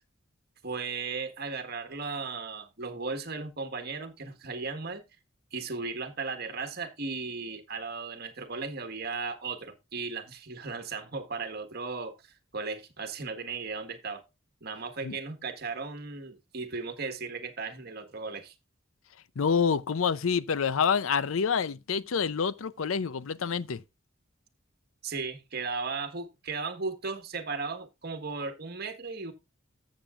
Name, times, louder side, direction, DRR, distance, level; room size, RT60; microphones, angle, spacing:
voice 1, 0.6-5.0 5.5-14.2 14.6-18.5 25.0-29.3, right 4 dB, 50° right, 1.5 m, -36 dB
voice 2, 19.4-23.8, left 6 dB, 85° left, 0.5 m, -27 dB
14.0 x 7.4 x 2.4 m
head